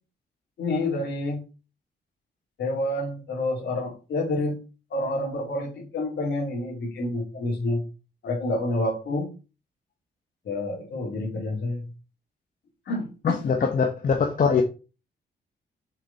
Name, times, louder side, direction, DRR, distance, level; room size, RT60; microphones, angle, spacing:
voice 1, 0.6-1.4 2.6-4.6 4.9-7.8 8.2-9.3 10.4-11.9 12.9-13.4, left 2 dB, 90° left, 3.5 m, -28 dB
voice 2, 13.2-14.6, left 6 dB, 50° left, 1.1 m, -22 dB
6.6 x 5.0 x 4.3 m
cardioid pair, 110°, 18 cm